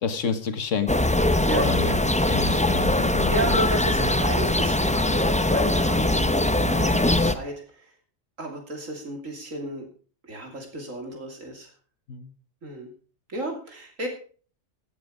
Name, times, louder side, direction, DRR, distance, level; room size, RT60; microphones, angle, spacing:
voice 1, 0.0-1.0 1.4-2.0 2.3-3.3 12.1-12.3, left 6 dB, 75° left, 10 dB, 1.7 m, -29 dB
sound 1, 0.9-7.3, left 1 dB, 10° left, 0.4 m, -22 dB
voice 2, 1.5-2.6 2.9-7.9 8.4-9.8 10.2-11.7 12.6-12.9 13.3-14.1, right 1 dB, 80° right, 2 dB, 3.2 m, -33 dB
17.0 x 7.7 x 5.2 m, 0.41 s
omnidirectional pair, 1.3 m